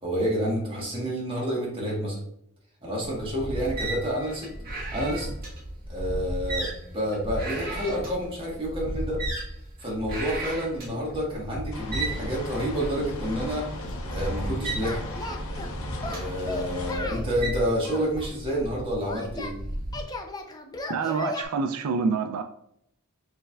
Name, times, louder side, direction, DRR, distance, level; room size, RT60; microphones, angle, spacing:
voice 1, 0.0-2.2 2.8-4.5 4.9-5.3 5.9-9.2 9.8-13.7 14.1-15.0 16.0-19.6, equal, 25° right, -4 dB, 1.5 m, -29 dB
sound 1, 3.0-20.0, right 1 dB, 45° right, 1.5 m, -35 dB
sound 2, 11.7-17.0, left 1 dB, 65° left, 0.7 m, -36 dB
Singing, 14.8-15.7 16.0-17.3 17.8-19.5 19.9-21.4, left 2 dB, 20° left, 0.4 m, -36 dB
voice 2, 20.9-22.4, right 5 dB, 75° right, 7 dB, 0.3 m, -27 dB
6.5 x 3.2 x 2.3 m, 0.73 s
head